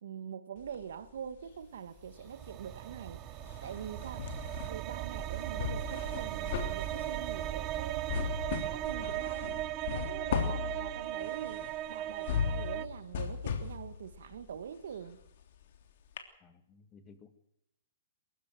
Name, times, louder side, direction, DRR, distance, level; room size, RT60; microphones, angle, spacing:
voice 1, 0.0-3.2 3.6-4.3 4.7-8.4 8.7-15.2, right 8 dB, 80° right, 1.6 m, -44 dB
sound 1, 0.6-1.7 2.0-15.8 16.2-16.3, left 7 dB, 60° left, 3.2 m, -38 dB
sound 2, 2.1-12.9, right 14 dB, 30° right, 0.9 m, -37 dB
voice 2, 16.4-17.3, left 5 dB, 20° left, 2.1 m, -57 dB
24.0 x 15.0 x 7.7 m
hypercardioid pair, 145°, 0 cm